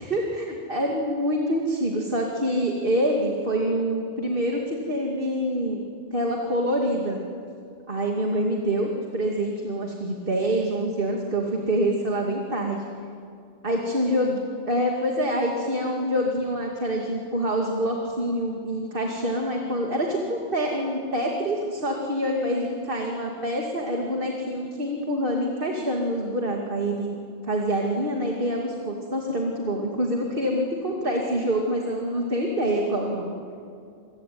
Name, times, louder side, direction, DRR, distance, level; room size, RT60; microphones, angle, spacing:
voice 1, 0.0-5.8 6.1-7.2 7.9-12.8 13.6-14.4 14.7-27.2 27.4-33.3, equal, 50° right, 0 dB, 2.7 m, -26 dB
27.5 x 23.0 x 9.5 m, 2.4 s
omnidirectional pair, 1.1 m